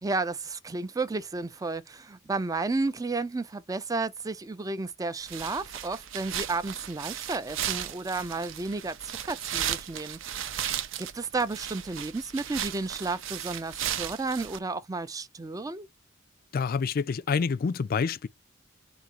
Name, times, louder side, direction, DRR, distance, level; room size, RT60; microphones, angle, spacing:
voice 1, 0.0-15.9, right 3 dB, 20° right, 0.4 m, -32 dB
sound 1, 5.2-14.6, right 10 dB, 90° right, 0.6 m, -35 dB
voice 2, 16.5-18.3, left 5 dB, 50° left, 0.4 m, -27 dB
3.9 x 2.7 x 4.5 m
head